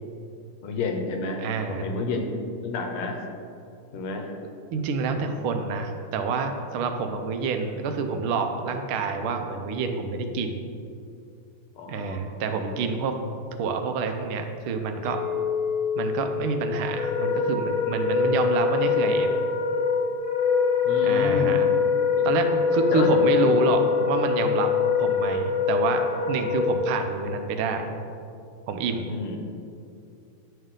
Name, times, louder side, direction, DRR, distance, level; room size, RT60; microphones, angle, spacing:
voice 1, 0.6-1.4 1.7-3.2 3.9-4.3 5.1-5.3 11.8-12.3 12.5-12.7 20.8-21.6 22.0-22.4 22.9-23.6 29.1-29.4, left 3 dB, 80° left, 3 dB, 1.7 m, -31 dB
voice 2, 1.4-1.9 4.7-10.6 11.9-13.1 13.6-15.2 16.0-19.3 21.0-21.7 22.2-24.7 25.0-27.9 28.7-29.1, right 4 dB, 80° right, 6 dB, 1.5 m, -27 dB
Chink clink, 15.0-19.3, left 6 dB, ahead, 0.9 m, -32 dB
Wind instrument woodwind instrument, 16.9-27.0, left 6 dB, 50° left, 0.6 m, -23 dB
9.9 x 5.5 x 3.7 m, 2.5 s
omnidirectional pair, 2.4 m